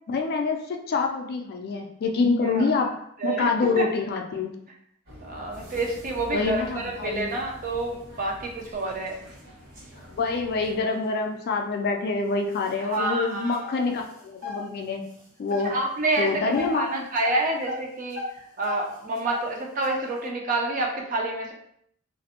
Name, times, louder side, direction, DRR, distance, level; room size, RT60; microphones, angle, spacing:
voice 1, 0.1-3.0 3.2-4.5 6.3-7.3 10.2-15.1 15.4-15.7 16.2-17.0, left 4 dB, 45° left, 3 dB, 0.3 m, -26 dB
sound 1, 5.1-10.8, equal, 55° right, 1.4 m, -46 dB
voice 2, 5.2-9.2 12.9-13.6 15.6-16.4 16.7-21.5, right 2 dB, 40° right, 1 dB, 0.4 m, -28 dB
sound 2, 5.5-11.6 12.0-12.1 12.4-14.7 15.0-15.7 16.0-16.8 17.2-19.5 19.8-20.2, left 3 dB, 80° right, 1.1 m, -38 dB
2.5 x 2.0 x 2.7 m, 0.69 s
head